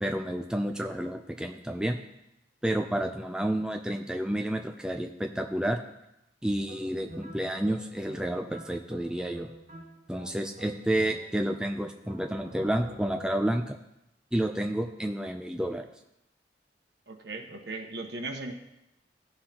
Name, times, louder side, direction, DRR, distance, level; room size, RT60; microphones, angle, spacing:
voice 1, 0.0-2.0 2.6-5.8 6.4-9.5 10.1-13.8 14.3-15.9, right 1 dB, 5° right, 3 dB, 0.4 m, -30 dB
sound 1, 6.6-11.6 12.0-13.6, right 1 dB, 40° right, 1.0 m, -47 dB
voice 2, 17.1-18.5, right 2 dB, 75° right, 3 dB, 1.2 m, -37 dB
15.5 x 5.7 x 2.9 m, 0.85 s
head